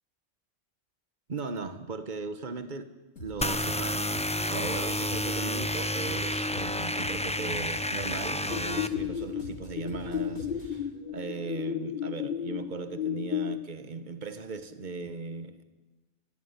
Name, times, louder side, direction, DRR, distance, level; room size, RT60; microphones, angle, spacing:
voice 1, 1.3-2.9 3.2-15.6, right 4 dB, 40° right, 1.4 m, -38 dB
sound 1, 3.2-10.8, left 1 dB, 85° left, 4.1 m, -45 dB
sound 2, 3.4-8.9, left 1 dB, 5° left, 0.7 m, -30 dB
sound 3, 8.5-13.5, left 9 dB, 45° left, 1.5 m, -33 dB
22.0 x 17.0 x 9.9 m
omnidirectional pair, 1.3 m